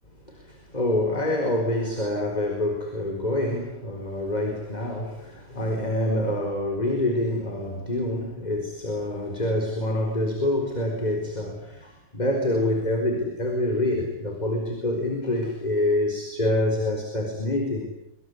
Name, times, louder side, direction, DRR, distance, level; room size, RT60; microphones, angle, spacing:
voice 1, 0.3-17.9, left 1 dB, 20° left, 3 dB, 4.6 m, -26 dB
26.0 x 23.0 x 9.8 m, 0.82 s
omnidirectional pair, 2.4 m